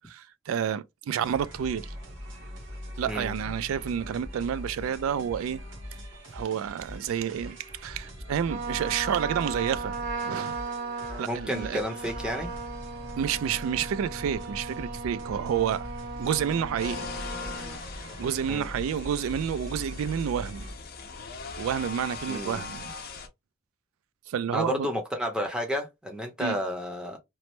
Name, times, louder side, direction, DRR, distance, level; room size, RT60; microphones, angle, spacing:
voice 1, 0.0-1.9 3.0-5.6 6.3-9.9 10.2-10.6 11.2-11.8 13.2-15.9 16.2-17.1 18.2-20.7 21.6-22.9 24.3-24.9 26.4-26.6, right 8 dB, 90° right, 0.3 m, -29 dB
sound 1, 1.2-20.7, equal, 70° right, 1.0 m, -41 dB
Trumpet, 8.5-17.8, right 4 dB, 45° right, 0.7 m, -37 dB
voice 2, 11.3-12.5 18.5-18.7 22.3-22.6 24.5-27.2, equal, 5° right, 0.7 m, -31 dB
sound 2, 16.8-23.3, left 4 dB, 50° left, 0.6 m, -40 dB
3.1 x 2.0 x 3.0 m
head